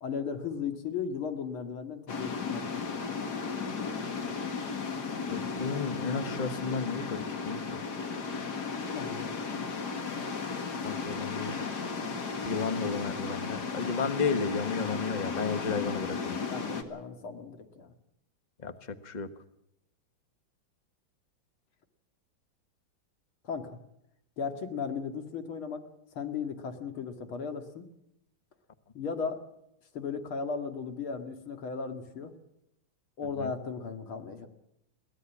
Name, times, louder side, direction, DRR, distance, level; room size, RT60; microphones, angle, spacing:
voice 1, 0.0-2.8 8.9-9.3 9.6-9.7 16.4-17.9 23.4-23.8 24.4-25.8 26.1-27.8 28.9-29.4 29.9-32.3 33.2-34.5, left 5 dB, 85° left, 7 dB, 2.9 m, -36 dB
sound 1, 2.1-16.8, left 5 dB, 55° left, 2.3 m, -35 dB
voice 2, 5.3-7.8 10.8-11.6 12.4-16.4 18.6-19.3 33.4-33.5, left 5 dB, 25° left, 11 dB, 1.1 m, -33 dB
22.0 x 17.0 x 7.4 m, 0.81 s
omnidirectional pair, 2.2 m